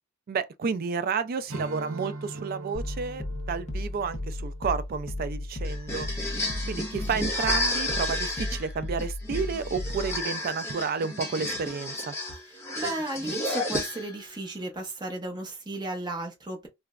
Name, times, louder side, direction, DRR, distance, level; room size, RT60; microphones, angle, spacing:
voice 1, 0.3-6.1 6.7-12.1, right 5 dB, 45° right, 0.3 m, -31 dB
Strum, 1.5-6.2, right 2 dB, 85° right, 0.8 m, -42 dB
sound 1, 2.7-10.2, left 1 dB, 35° left, 0.5 m, -35 dB
sound 2, 5.6-14.3, left 1 dB, 15° left, 1.1 m, -32 dB
voice 2, 12.5-16.7, right 2 dB, 20° right, 0.8 m, -34 dB
3.3 x 2.0 x 2.3 m
head